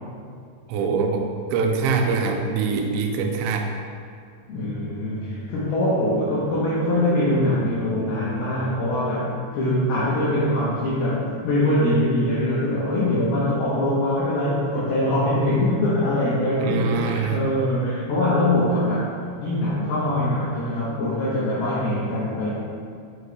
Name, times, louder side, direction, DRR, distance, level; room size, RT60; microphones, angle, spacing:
voice 1, 0.7-3.7 16.6-17.4, right 4 dB, 85° right, 2 dB, 3.0 m, -24 dB
voice 2, 4.5-19.1 19.4-22.5, left 1 dB, 85° left, -8 dB, 2.2 m, -23 dB
8.8 x 6.3 x 2.2 m, 2.2 s
omnidirectional pair, 5.8 m